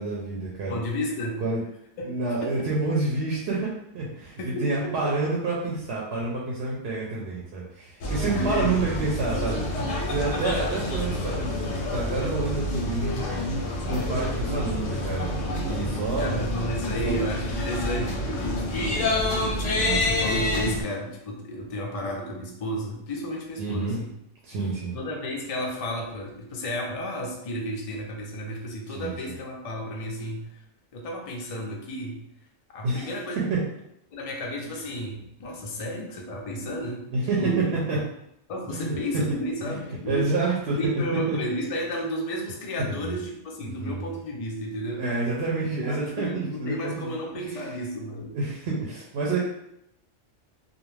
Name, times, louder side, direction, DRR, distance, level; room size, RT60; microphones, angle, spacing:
voice 1, 0.0-0.8 1.4-1.6 2.0-13.2 13.9-16.4 16.8-17.1 19.7-20.1 23.6-24.0 24.4-25.0 28.9-29.3 32.8-33.1 33.4-33.6 37.1-38.0 38.7-39.2 39.6-40.9 41.3-41.4 43.0-43.1 43.6-44.1 45.0-47.7 48.3-49.4, right 3 dB, 65° right, -4 dB, 0.8 m, -29 dB
voice 2, 0.7-1.4 2.0-2.7 4.4-5.2 8.3-8.8 16.2-19.6 20.0-24.1 24.9-30.6 30.9-32.2 32.7-33.4 34.1-37.1 37.4-37.7 38.5-40.3 40.8-45.0 45.9-48.4, equal, 55° left, -1 dB, 0.4 m, -32 dB
sound 1, 8.0-20.8, left 1 dB, 90° left, 0.9 m, -28 dB
2.4 x 2.1 x 3.1 m, 0.77 s
omnidirectional pair, 1.2 m